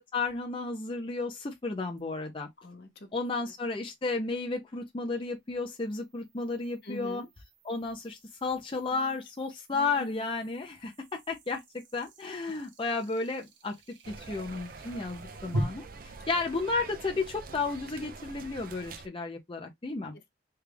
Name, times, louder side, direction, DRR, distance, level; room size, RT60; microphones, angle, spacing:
voice 1, 0.1-2.5 3.1-7.2 7.6-11.6 11.9-13.7 14.1-20.1, left 3 dB, 30° left, 0.5 m, -33 dB
sound 1, 2.0-2.1 5.5-15.6, equal, 75° right, 0.9 m, -43 dB
voice 2, 2.6-3.1 6.8-7.3 8.9-9.2 9.7-10.3 12.5-12.6 16.2-16.3 20.1-20.3, equal, 60° left, 0.8 m, -44 dB
sound 2, 14.0-19.1, right 4 dB, 50° right, 0.4 m, -45 dB
3.3 x 2.4 x 3.3 m
head